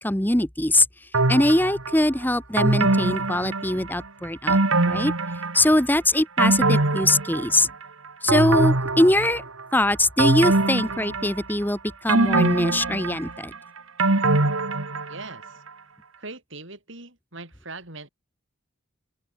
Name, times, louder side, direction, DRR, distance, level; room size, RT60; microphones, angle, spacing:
voice 1, 0.0-5.1 5.5-7.7 8.2-9.4 9.7-13.5, left 1 dB, 10° left, 1.3 m, -22 dB
sound 1, 1.1-2.0 2.6-4.0 4.5-5.8 6.1-7.8 8.3-9.6 10.2-11.6 12.1-15.3 15.7-15.8, right 2 dB, 75° right, 2.2 m, -23 dB
voice 2, 15.1-15.6 16.2-18.1, right 3 dB, 60° right, 7.2 m, -40 dB
open air
head